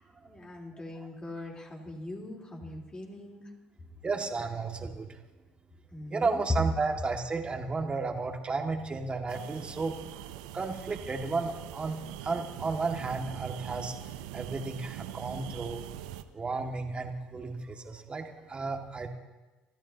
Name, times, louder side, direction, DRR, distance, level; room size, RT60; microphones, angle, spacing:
voice 1, 0.2-3.5 5.9-6.4, left 1 dB, 25° left, -1 dB, 3.8 m, -42 dB
voice 2, 4.0-5.1 6.1-10.0 10.5-13.9 14.3-15.8 16.3-19.1, right 3 dB, 30° right, 3 dB, 2.0 m, -33 dB
sound 1, 9.3-16.2, right 13 dB, 85° right, 0.6 m, -43 dB
28.0 x 13.5 x 2.9 m, 1.2 s
hypercardioid pair, 65°, 4 cm